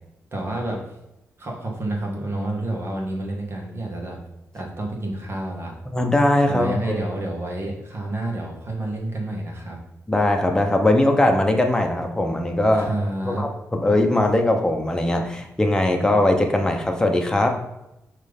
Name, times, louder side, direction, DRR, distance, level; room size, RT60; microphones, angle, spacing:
voice 1, 0.3-0.8 1.4-4.2 4.5-5.8 6.5-9.8 12.7-13.4, right 1 dB, 45° right, -1 dB, 1.8 m, -29 dB
voice 2, 5.9-7.0 10.1-12.9 13.2-17.6, left 1 dB, 15° left, 3 dB, 0.9 m, -20 dB
6.1 x 3.3 x 5.3 m, 0.90 s
cardioid pair, 105°, 5 cm